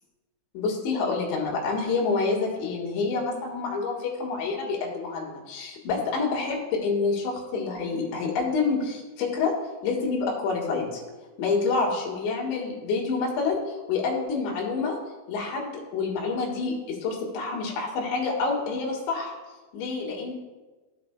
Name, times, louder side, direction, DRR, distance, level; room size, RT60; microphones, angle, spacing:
voice 1, 0.5-9.5 9.8-11.0 11.4-15.0 15.3-19.4 19.7-20.3, left 4 dB, 75° left, -2 dB, 3.7 m, -27 dB
16.0 x 5.8 x 2.2 m, 1.2 s
omnidirectional pair, 5.5 m